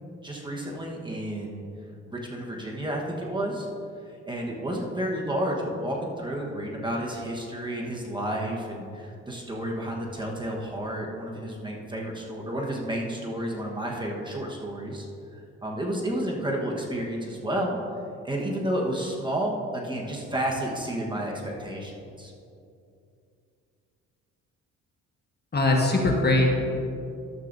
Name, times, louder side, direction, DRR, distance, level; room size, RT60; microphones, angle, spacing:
voice 1, 0.2-1.6 2.1-3.7 4.2-15.1 15.3-17.8 18.2-21.9 22.2-22.3, right 1 dB, 15° right, -2 dB, 1.2 m, -31 dB
voice 2, 25.5-26.5, left 2 dB, 35° left, 0 dB, 1.3 m, -21 dB
12.0 x 7.5 x 2.6 m, 2.6 s
cardioid pair, 90°, 30 cm